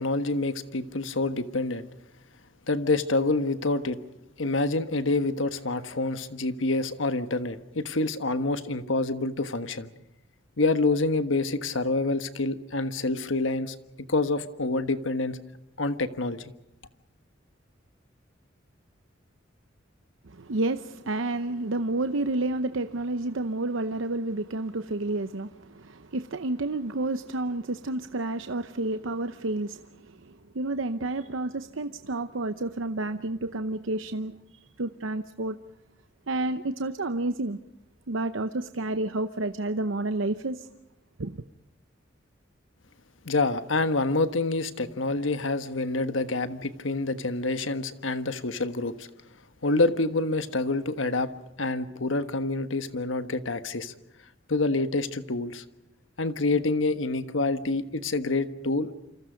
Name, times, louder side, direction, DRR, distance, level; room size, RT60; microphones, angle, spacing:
voice 1, 0.0-1.9 2.7-4.0 4.4-9.9 10.6-13.7 14.1-15.4 15.8-16.5 43.2-49.1 49.6-51.3 51.6-53.9 54.5-55.6 56.2-58.9, left 2 dB, 80° left, 1.4 m, -27 dB
voice 2, 20.3-34.4 34.8-35.6 36.3-37.6 38.1-40.7 41.2-41.4, right 2 dB, 85° right, 0.8 m, -30 dB
28.0 x 26.0 x 5.2 m
head